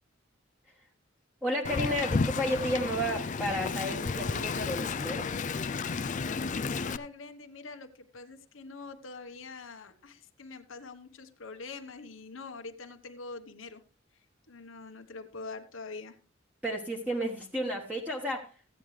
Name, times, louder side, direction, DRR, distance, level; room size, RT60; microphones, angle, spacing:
voice 1, 1.4-5.3 16.6-18.5, equal, 10° right, -2 dB, 1.3 m, -32 dB
Wind, 1.6-7.0, left 4 dB, 40° left, 0.4 m, -32 dB
voice 2, 6.3-13.8 14.5-16.2, left 3 dB, 75° left, 7 dB, 1.0 m, -44 dB
14.5 x 9.2 x 3.2 m, 0.35 s
head